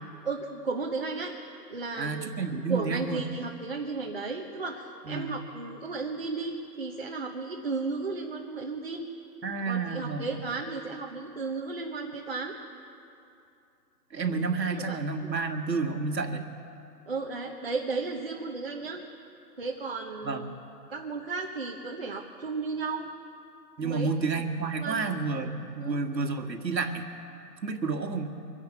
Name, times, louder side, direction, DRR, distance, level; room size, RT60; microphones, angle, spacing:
voice 1, 0.2-1.3 1.7-2.3 2.7-9.1 9.7-12.6 14.3-15.0 17.1-19.0 19.6-20.6 20.9-23.1 23.8-24.1 24.8-25.1 25.8-26.0, right 4 dB, 35° right, 0 dB, 0.9 m, -34 dB
voice 2, 2.0-3.2 5.1-5.3 9.4-10.2 14.1-16.4 20.2-20.5 23.8-27.0 27.6-28.3, right 4 dB, 85° right, 5 dB, 1.8 m, -30 dB
25.5 x 10.5 x 4.5 m, 2.6 s
hypercardioid pair, 170°, 50 cm